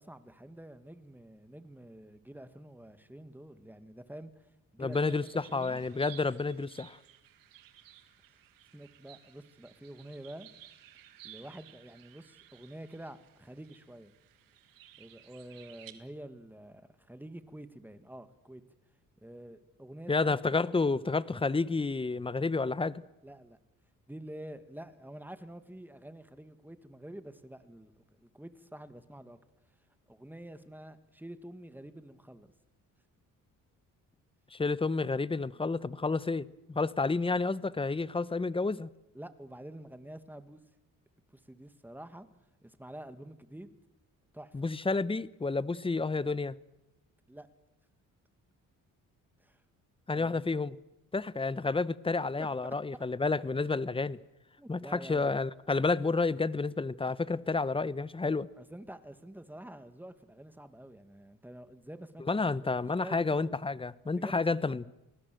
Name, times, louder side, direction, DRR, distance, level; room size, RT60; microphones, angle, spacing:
voice 1, 0.0-4.5 4.7-5.8 8.7-10.5 11.2-14.1 15.0-18.6 19.2-20.4 23.2-23.6 24.1-27.9 28.2-29.4 30.1-32.5 39.1-40.6 41.3-42.3 42.6-43.7 44.3-44.7 47.3-47.5 49.4-49.6 50.1-50.4 52.4-52.5 54.6-55.4 58.6-63.5 64.2-64.4, right 1 dB, 5° right, 2.0 m, -48 dB
voice 2, 4.8-7.0 20.1-23.0 34.5-38.9 44.5-46.6 50.1-50.8 51.1-54.2 54.7-58.5 62.3-64.8, left 3 dB, 15° left, 0.9 m, -30 dB
sound 1, 4.9-15.9, right 12 dB, 90° right, 2.1 m, -56 dB
28.0 x 20.0 x 7.8 m
cardioid pair, 90°, 33 cm